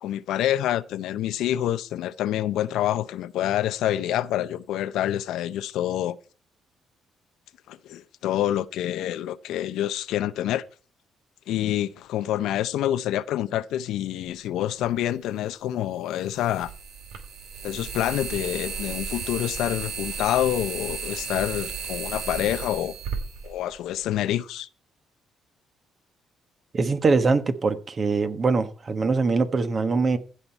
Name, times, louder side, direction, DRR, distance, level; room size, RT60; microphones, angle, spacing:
voice 1, 0.0-6.2 7.7-10.6 11.5-16.7 17.6-22.9 23.4-24.7, left 12 dB, 85° left, 0.6 m, -27 dB
sound 1, 14.8-14.9 16.3-24.2, right 5 dB, 85° right, 2.6 m, -34 dB
voice 2, 26.7-30.2, right 4 dB, 40° right, 1.4 m, -23 dB
15.5 x 5.7 x 4.5 m
cardioid pair, 90°, 0 cm